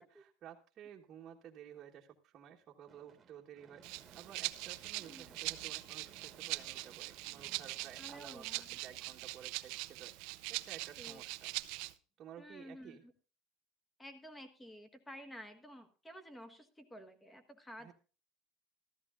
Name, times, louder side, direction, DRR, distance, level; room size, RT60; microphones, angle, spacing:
voice 1, 0.0-8.5 8.8-11.5 12.2-13.0 17.8-17.9, right 9 dB, 35° right, -2 dB, 1.2 m, -54 dB
Gunshot gunfire / Fireworks, 2.9-9.1, right 5 dB, 20° right, 1.5 m, -62 dB
Rattle (instrument), 3.8-11.9, right 21 dB, 65° right, 0.6 m, -42 dB
voice 2, 4.9-5.3 8.0-8.8 11.0-11.2 12.4-13.1 14.0-17.9, equal, 10° left, 9 dB, 1.4 m, -52 dB
14.0 x 13.5 x 2.5 m, 0.35 s
cardioid pair, 150°, 0 cm